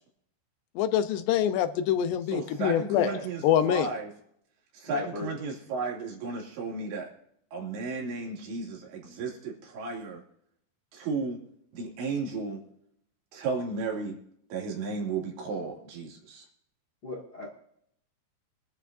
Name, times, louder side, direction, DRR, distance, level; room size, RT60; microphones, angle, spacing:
voice 1, 0.8-3.1 3.4-3.9, left 10 dB, 80° left, 10 dB, 2.8 m, -25 dB
voice 2, 2.3-4.1 4.7-7.1 7.5-10.2 10.9-11.4 11.7-12.6 13.3-14.2 14.5-16.5, right 4 dB, 80° right, -1 dB, 4.9 m, -34 dB
voice 3, 2.9-3.3 4.9-5.3 17.0-17.5, left 2 dB, 55° left, -2 dB, 1.1 m, -36 dB
23.5 x 11.5 x 2.7 m, 0.70 s
omnidirectional pair, 5.1 m